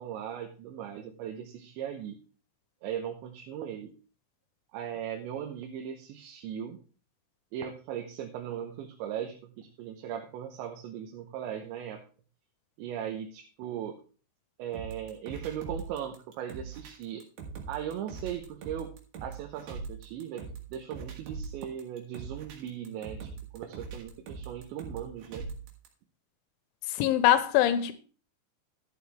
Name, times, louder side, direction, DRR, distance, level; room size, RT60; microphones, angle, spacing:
voice 1, 0.0-2.2 2.8-3.9 4.7-6.8 7.5-12.0 12.8-14.0 14.6-17.2 17.7-18.9 19.2-23.3 23.5-25.5, right 9 dB, 80° right, 3.2 m, -38 dB
sound 1, 14.7-25.9, right 5 dB, 60° right, 3.5 m, -42 dB
voice 2, 27.0-27.9, left 11 dB, 90° left, 3.3 m, -23 dB
12.5 x 9.4 x 3.5 m
omnidirectional pair, 5.4 m